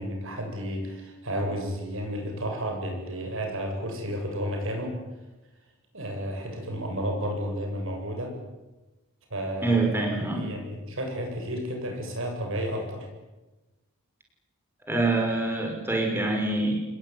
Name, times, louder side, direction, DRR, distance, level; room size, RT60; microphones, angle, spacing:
voice 1, 0.0-5.0 5.9-8.4 9.3-13.1, equal, 65° right, 3 dB, 7.9 m, -32 dB
voice 2, 9.6-10.4 14.9-16.7, right 2 dB, 10° right, 1 dB, 5.9 m, -25 dB
28.0 x 21.5 x 9.7 m, 1.1 s
head